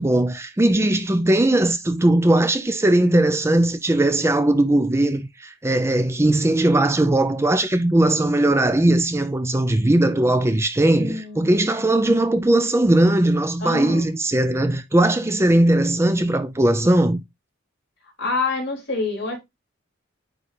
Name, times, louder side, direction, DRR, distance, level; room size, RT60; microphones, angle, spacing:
voice 1, 0.0-17.2, right 1 dB, 15° right, 0.4 m, -19 dB
voice 2, 11.0-12.0 13.6-14.1 18.2-19.4, left 3 dB, 55° left, 3.6 m, -27 dB
9.6 x 3.8 x 3.2 m
head